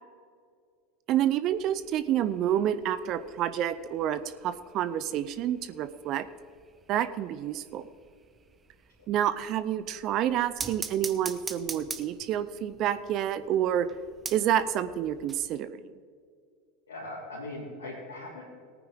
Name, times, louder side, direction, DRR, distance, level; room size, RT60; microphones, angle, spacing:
voice 1, 1.1-6.3 6.9-7.8 9.1-13.9 14.3-15.9, right 10 dB, 50° right, 13 dB, 0.6 m, -28 dB
sound 1, 1.5-15.5, right 5 dB, 25° right, 1.0 m, -45 dB
voice 2, 16.9-18.6, left 2 dB, 85° left, -6 dB, 3.2 m, -40 dB
18.5 x 9.4 x 3.8 m, 2.2 s
hypercardioid pair, 80°, 0 cm